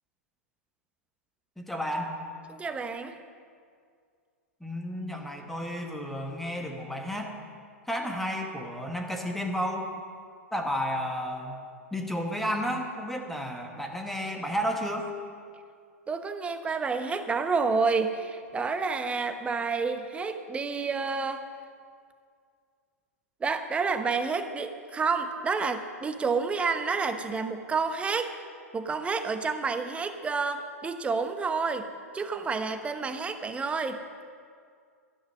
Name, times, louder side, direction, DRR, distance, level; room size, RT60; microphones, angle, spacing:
voice 1, 1.6-2.1 4.6-7.4 7.9-9.9 10.5-11.6 11.9-15.1, equal, 5° left, 2 dB, 1.7 m, -32 dB
voice 2, 2.5-3.1 16.1-21.4 23.4-28.3 28.7-31.9 32.1-34.0, right 4 dB, 15° right, 8 dB, 1.0 m, -29 dB
12.5 x 11.0 x 6.0 m, 2.2 s
figure-of-eight pair, 105°, 8 cm